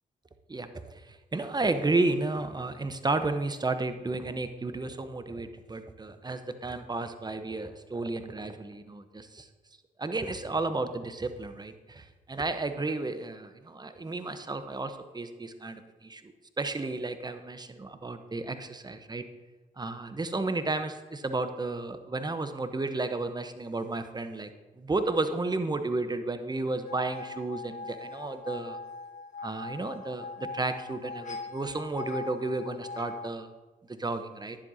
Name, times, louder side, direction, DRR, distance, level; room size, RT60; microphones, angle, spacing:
voice 1, 0.5-9.5 10.0-16.2 16.6-19.2 19.8-24.5 24.8-28.8 29.4-33.5 33.9-34.6, right 2 dB, 25° right, 9 dB, 0.9 m, -32 dB
sound 1, 26.9-33.3, left 3 dB, 45° left, 1.7 m, -41 dB
10.5 x 7.6 x 2.8 m, 1.2 s
supercardioid pair, 45°, 18 cm